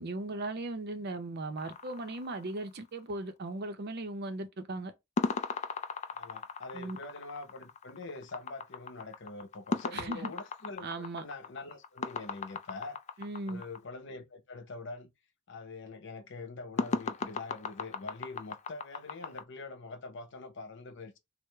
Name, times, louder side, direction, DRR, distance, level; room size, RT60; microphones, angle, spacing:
voice 1, 0.0-4.9 6.7-7.0 9.9-10.3 10.8-11.2 13.2-13.6, right 2 dB, 50° right, 0.6 m, -37 dB
sound 1, 1.6-3.0 5.2-13.8 16.8-19.4, left 4 dB, 35° left, 0.3 m, -37 dB
voice 2, 6.1-13.0 13.5-15.1 15.5-21.2, left 3 dB, 60° left, 0.7 m, -44 dB
4.6 x 2.0 x 3.3 m
head